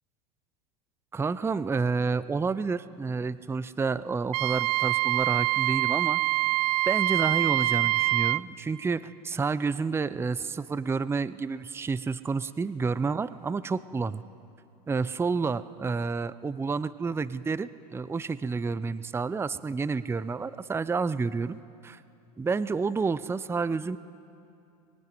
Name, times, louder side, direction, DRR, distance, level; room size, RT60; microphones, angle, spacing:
voice 1, 1.1-6.2 6.9-14.2 14.9-22.0 22.4-24.0, right 4 dB, 10° right, 16 dB, 0.6 m, -29 dB
Wind instrument woodwind instrument, 4.3-8.4, right 18 dB, 70° right, 0.5 m, -25 dB
23.0 x 20.5 x 9.3 m, 2.6 s
hypercardioid pair, 95°, 20 cm